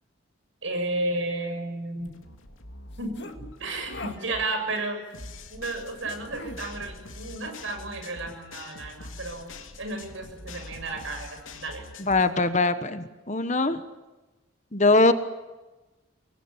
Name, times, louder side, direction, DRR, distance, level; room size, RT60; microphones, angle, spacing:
voice 1, 0.6-2.1 3.0-5.0 5.5-9.5 9.8-11.8, right 2 dB, 70° right, 5 dB, 7.4 m, -33 dB
sound 1, 2.0-12.3, left 2 dB, 75° left, 3.2 m, -44 dB
sound 2, 2.9-3.4 3.8-4.2 6.0-6.6, left 2 dB, 55° left, 2.3 m, -40 dB
voice 2, 12.0-13.8 14.7-15.1, left 3 dB, 35° left, 10 dB, 1.4 m, -22 dB
26.0 x 22.5 x 9.9 m, 1.1 s
head